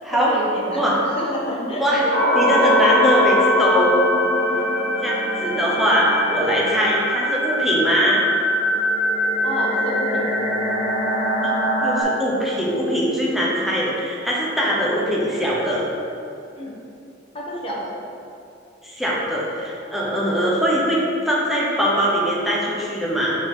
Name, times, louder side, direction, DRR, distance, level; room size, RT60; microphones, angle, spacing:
voice 1, 0.1-0.8 1.1-2.1 9.4-10.3 16.5-16.7 17.3-17.9, equal, 30° left, -5 dB, 1.1 m, -29 dB
sound 1, 2.1-12.0, left 1 dB, 50° left, 1.4 m, -21 dB
voice 2, 2.3-4.0 5.0-8.3 11.4-15.9 18.8-21.0 21.2-23.4, equal, ahead, -6 dB, 0.9 m, -21 dB
5.7 x 4.6 x 3.8 m, 2.6 s
head